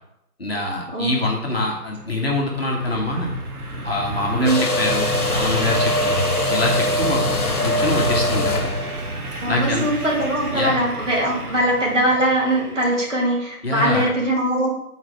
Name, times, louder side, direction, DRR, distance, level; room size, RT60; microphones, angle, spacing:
voice 1, 0.4-3.4 3.8-6.2 6.5-7.4 7.6-8.8 9.5-9.8 10.5-10.7 13.6-14.1, left 2 dB, 40° left, -2 dB, 1.2 m, -24 dB
sound 1, 1.7-13.2, right 1 dB, 65° right, 1.2 m, -30 dB
sound 2, 4.5-9.9, left 2 dB, 65° left, 1.2 m, -23 dB
voice 2, 9.4-14.7, right 1 dB, 50° right, -3 dB, 2.1 m, -21 dB
7.9 x 4.1 x 4.4 m, 0.81 s
figure-of-eight pair, 165°, 48 cm